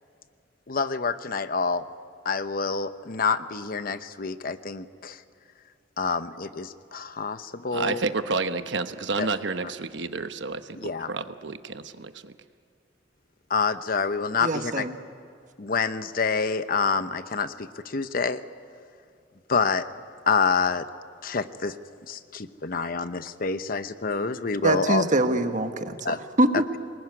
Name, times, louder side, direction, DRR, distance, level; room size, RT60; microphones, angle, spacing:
voice 1, 0.7-1.8 2.2-5.2 6.0-8.0 9.2-9.3 10.8-11.1 13.5-14.9 15.6-18.4 19.5-19.9 20.3-20.8 21.2-21.7 22.1-25.0 26.0-26.2, left 5 dB, 50° left, 11 dB, 0.9 m, -27 dB
voice 2, 7.7-12.3, right 3 dB, 75° right, 10 dB, 1.0 m, -30 dB
voice 3, 14.4-14.9 24.6-26.8, right 2 dB, 45° right, 7 dB, 1.5 m, -24 dB
24.5 x 21.0 x 9.7 m, 2.2 s
head